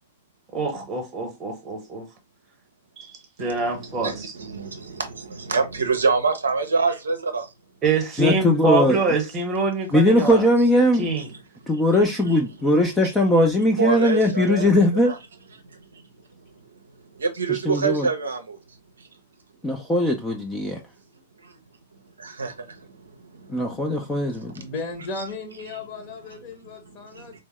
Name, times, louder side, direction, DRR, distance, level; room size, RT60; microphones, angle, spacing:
voice 1, 0.5-2.1 3.0-4.3 7.8-10.5 11.0-11.3, right 3 dB, 25° right, 0.9 m, -25 dB
voice 2, 3.4-7.5 11.2-11.4 11.7-12.7 13.0-13.1 13.8-14.7 15.0-15.2 15.5-19.2 21.1-21.6 22.0-24.7 26.2-26.4 26.9-27.4, right 4 dB, 70° right, 0.6 m, -28 dB
voice 3, 8.2-9.0 9.9-11.1 11.7-15.1 17.5-18.1 19.6-20.8 23.5-24.5, left 1 dB, 10° left, 0.4 m, -20 dB
voice 4, 24.6-27.4, left 3 dB, 35° left, 0.9 m, -35 dB
3.4 x 2.0 x 3.0 m
figure-of-eight pair, 105°, 0 cm